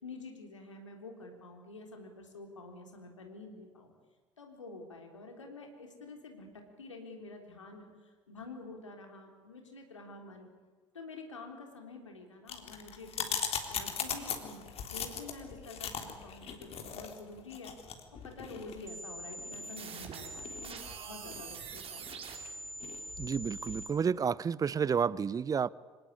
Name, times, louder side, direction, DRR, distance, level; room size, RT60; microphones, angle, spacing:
voice 1, 0.0-3.9 4.4-7.9 8.3-10.5 10.9-13.4 13.7-17.7 18.2-22.3, left 3 dB, 80° left, 3 dB, 3.6 m, -48 dB
sound 1, 12.5-23.9, left 7 dB, 40° left, 3.6 m, -40 dB
sound 2, 18.9-23.9, right 3 dB, 40° right, 5.0 m, -44 dB
voice 2, 23.2-25.7, right 6 dB, 25° right, 23 dB, 0.7 m, -30 dB
26.0 x 18.5 x 9.6 m, 1.4 s
figure-of-eight pair, 65°, 15 cm